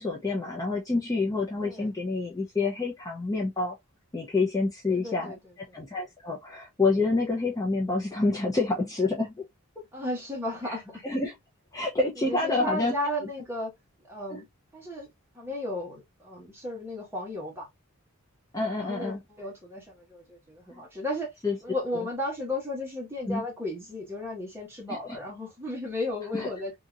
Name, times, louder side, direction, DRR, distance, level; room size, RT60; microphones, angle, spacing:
voice 1, 0.0-3.8 4.1-5.3 5.7-9.4 10.6-10.7 11.0-11.3 11.7-12.9 14.3-14.4 18.5-19.2 20.7-20.8 21.4-21.6 23.3-23.4 24.9-25.2 26.3-26.5, left 3 dB, 15° left, 0.6 m, -28 dB
voice 2, 1.6-1.9 4.9-5.4 5.7-5.8 9.9-11.0 12.2-13.7 14.1-14.5 14.7-15.1 15.3-17.7 18.7-21.3 21.6-26.7, left 1 dB, 10° right, 1.4 m, -34 dB
2.8 x 2.8 x 2.4 m
head